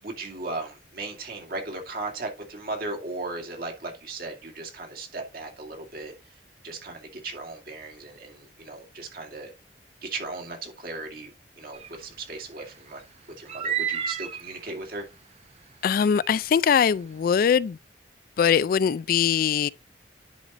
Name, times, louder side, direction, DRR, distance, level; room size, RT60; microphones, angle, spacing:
voice 1, 0.0-6.1 6.6-9.5 10.0-11.3 11.6-13.0 13.4-15.1, right 3 dB, 55° right, 2.2 m, -36 dB
sound 1, 11.7-12.0 13.5-14.6 16.0-16.3, right 8 dB, 35° right, 0.7 m, -30 dB
voice 2, 15.8-17.8 18.4-19.7, left 7 dB, 55° left, 0.3 m, -22 dB
10.0 x 4.0 x 4.0 m
head